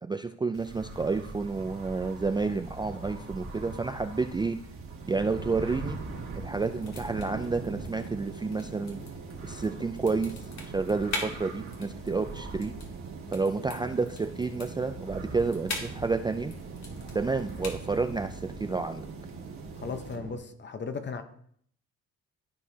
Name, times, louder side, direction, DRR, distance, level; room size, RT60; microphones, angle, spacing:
voice 1, 0.0-4.6 5.1-6.0 6.3-9.0 9.4-10.3 10.7-12.7 13.3-16.5 17.1-19.0, right 4 dB, 15° right, 0.3 m, -30 dB
sound 1, 0.5-20.2, right 3 dB, 45° right, 1.8 m, -44 dB
sound 2, 4.6-20.4, right 4 dB, 75° right, 1.9 m, -43 dB
sound 3, 6.6-18.0, left 3 dB, 65° left, 2.0 m, -43 dB
voice 2, 19.8-21.2, left 5 dB, 35° left, 0.9 m, -36 dB
14.0 x 4.6 x 2.8 m
cardioid pair, 90°, 30 cm